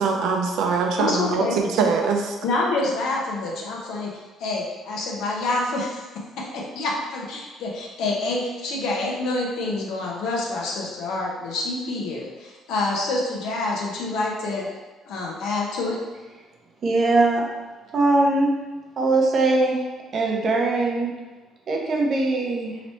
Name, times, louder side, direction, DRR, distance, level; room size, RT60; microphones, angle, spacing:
voice 1, 0.0-2.3, right 5 dB, 75° right, 2 dB, 0.5 m, -22 dB
voice 2, 1.0-1.6 2.4-6.0 6.5-14.7 15.0-16.0, left 2 dB, 70° left, -2 dB, 0.9 m, -27 dB
voice 3, 16.8-17.4 17.9-18.5 19.0-19.8 20.1-21.1 21.7-22.7, right 2 dB, 35° right, 0 dB, 0.6 m, -21 dB
3.1 x 2.9 x 4.3 m, 1.3 s
cardioid pair, 165°, 0 cm